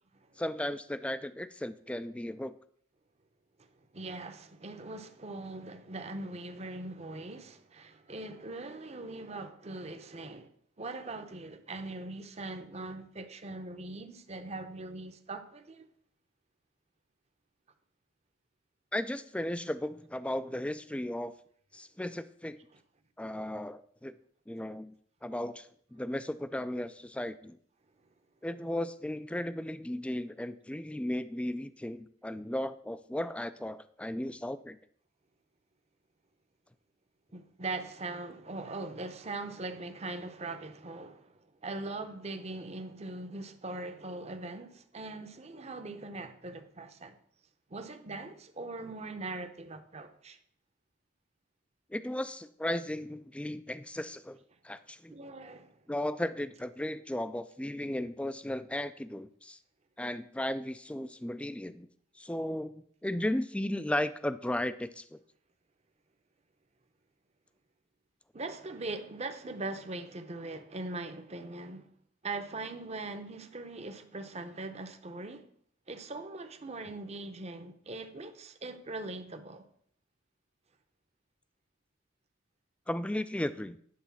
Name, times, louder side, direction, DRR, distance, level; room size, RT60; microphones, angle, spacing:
voice 1, 0.4-2.6 18.9-21.3 21.7-22.6 23.2-24.1 24.5-24.9 25.2-27.6 28.4-34.8 51.9-54.4 54.6-55.1 55.9-59.6 60.0-61.9 62.2-65.2 82.9-83.8, left 1 dB, 5° left, 0.3 m, -35 dB
voice 2, 3.6-10.5 10.8-15.9 37.3-47.2 47.7-50.4 55.1-55.8 68.3-71.9 72.2-75.5 75.9-79.7, right 2 dB, 30° right, 0.7 m, -41 dB
10.5 x 4.0 x 7.1 m
head